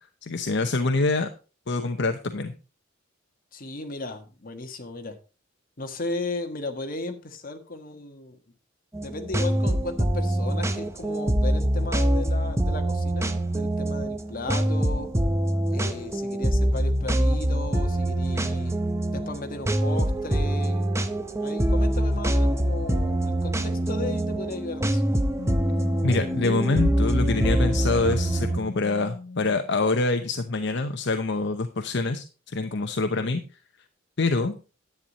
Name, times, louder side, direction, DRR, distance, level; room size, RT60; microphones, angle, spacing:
voice 1, 0.2-1.3 1.7-2.5 26.0-33.4 34.2-34.5, left 3 dB, 60° left, 7 dB, 0.8 m, -25 dB
voice 2, 3.5-5.2 5.8-8.4 9.0-15.1 15.7-18.8 19.1-21.0 21.4-25.1 33.1-33.2, left 2 dB, 45° left, 5 dB, 1.5 m, -35 dB
sound 1, 8.9-28.6, right 1 dB, 15° right, 0.8 m, -24 dB
Wind instrument woodwind instrument, 25.4-29.8, left 3 dB, 90° left, 1.0 m, -38 dB
10.5 x 8.9 x 4.0 m, 0.33 s
head